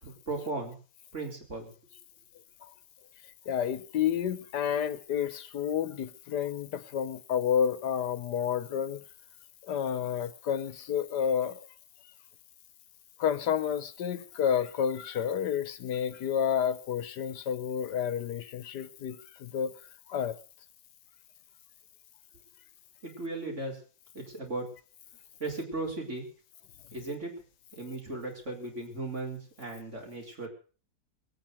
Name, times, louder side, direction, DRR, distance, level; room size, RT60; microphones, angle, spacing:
voice 1, 0.0-0.8 1.1-1.7 23.0-23.8 24.1-24.7 25.4-26.2 26.9-27.3 27.7-30.5, right 2 dB, 45° right, 1 dB, 4.2 m, -36 dB
voice 2, 3.4-9.0 9.6-11.7 13.2-19.7 20.1-20.4, left 8 dB, 85° left, 15 dB, 1.6 m, -30 dB
21.5 x 9.1 x 6.4 m, 0.40 s
omnidirectional pair, 1.7 m